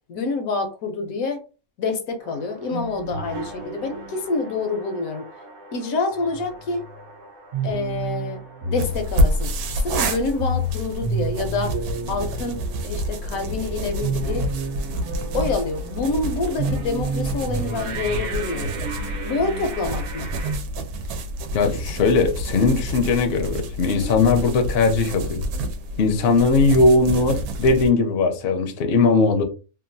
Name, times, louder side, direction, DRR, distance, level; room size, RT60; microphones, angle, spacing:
voice 1, 0.1-1.4 1.8-5.3 5.7-6.9 7.6-9.5 9.8-12.6 12.8-14.5 15.3-18.8 19.2-20.3, left 3 dB, 80° left, 1.1 m, -27 dB
sound 1, 2.2-20.6, right 3 dB, 60° right, 0.9 m, -32 dB
sound 2, 8.8-27.9, equal, 90° right, 1.0 m, -28 dB
voice 2, 21.5-25.4 26.0-29.4, left 3 dB, 60° left, 0.7 m, -19 dB
2.9 x 2.3 x 2.6 m
omnidirectional pair, 1.5 m